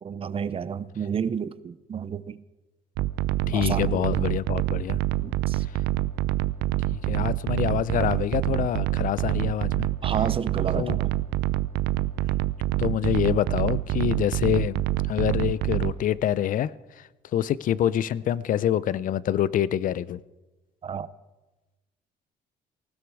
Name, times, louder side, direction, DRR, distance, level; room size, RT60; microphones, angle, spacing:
voice 1, 0.0-2.4 3.5-4.2 5.2-5.6 10.0-11.1 20.8-21.1, right 7 dB, 35° right, 0.6 m, -31 dB
sound 1, 3.0-15.9, right 16 dB, 85° right, 0.6 m, -26 dB
voice 2, 3.5-5.0 6.9-9.9 10.7-11.0 12.8-14.8 15.1-20.2, left 11 dB, 55° left, 0.5 m, -26 dB
19.0 x 16.0 x 4.8 m
cardioid pair, 110°, 17 cm